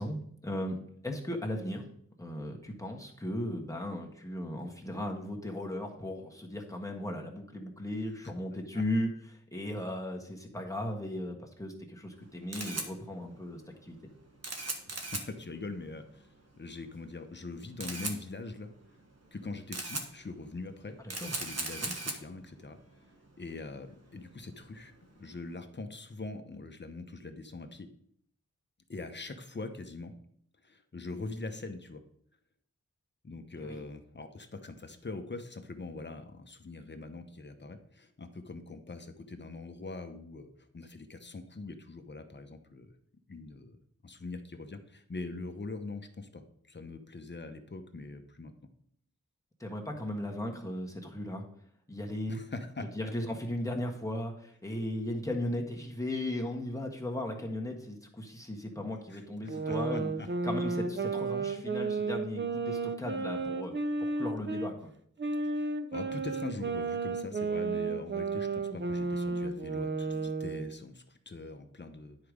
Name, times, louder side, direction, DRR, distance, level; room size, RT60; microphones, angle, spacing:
voice 1, 0.0-1.8 2.2-14.0 21.0-21.4 21.8-21.9 33.6-33.8 49.6-51.4 51.9-52.4 52.9-60.1 60.4-63.7 64.0-64.9, left 1 dB, 10° left, 0 dB, 1.5 m, -36 dB
Camera, 12.1-25.5, right 2 dB, 60° right, 1.5 m, -41 dB
voice 2, 14.9-16.3 16.6-18.7 19.3-21.0 21.2-22.8 23.4-24.9 25.2-27.9 28.9-30.1 30.6-32.0 33.2-42.9 43.3-43.8 44.0-48.5 52.3-53.1 59.1-60.3 65.5-72.2, left 3 dB, 40° left, 7 dB, 0.9 m, -43 dB
sound 1, 59.5-64.7 65.2-70.8, right 4 dB, 40° right, 0.7 m, -33 dB
10.0 x 4.8 x 5.1 m, 0.68 s
wide cardioid pair, 80°, 29 cm